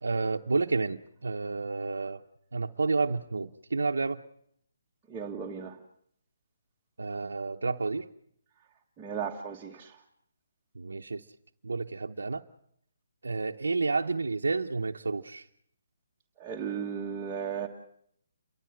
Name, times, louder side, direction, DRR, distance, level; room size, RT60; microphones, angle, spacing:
voice 1, 0.0-2.2 2.5-4.2 7.0-8.1 10.7-11.2 11.6-12.4 13.2-15.5, right 3 dB, 90° right, 3 dB, 0.8 m, -30 dB
voice 2, 5.1-5.8 9.0-9.9 16.4-17.7, right 7 dB, 15° right, -3 dB, 1.6 m, -35 dB
29.5 x 13.5 x 7.7 m, 0.69 s
hypercardioid pair, 155°, 0 cm